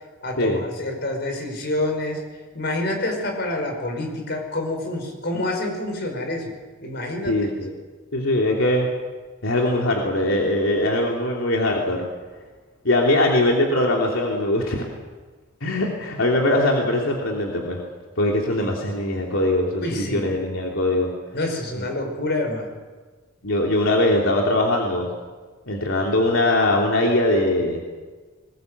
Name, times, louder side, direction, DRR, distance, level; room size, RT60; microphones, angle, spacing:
voice 1, 0.2-2.2 2.5-6.5 6.8-7.5 18.6-18.7 19.8-20.3 21.3-22.7, left 1 dB, 55° left, 3 dB, 5.4 m, -27 dB
voice 2, 7.3-7.7 8.1-8.9 9.4-12.0 12.8-14.9 15.6-17.8 18.2-21.1 21.7-21.9 23.4-25.1 25.7-27.8, left 1 dB, 85° left, -1 dB, 3.0 m, -21 dB
21.0 x 20.5 x 8.2 m, 1.4 s
head